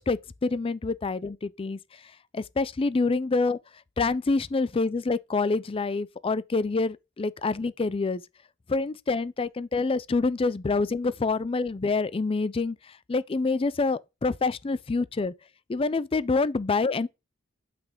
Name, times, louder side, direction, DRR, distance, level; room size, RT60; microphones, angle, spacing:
voice 1, 0.0-1.8 2.3-3.6 4.0-8.2 8.7-12.8 13.1-15.3 15.7-17.1, left 3 dB, 30° left, 0.4 m, -26 dB
11.5 x 5.9 x 3.8 m
head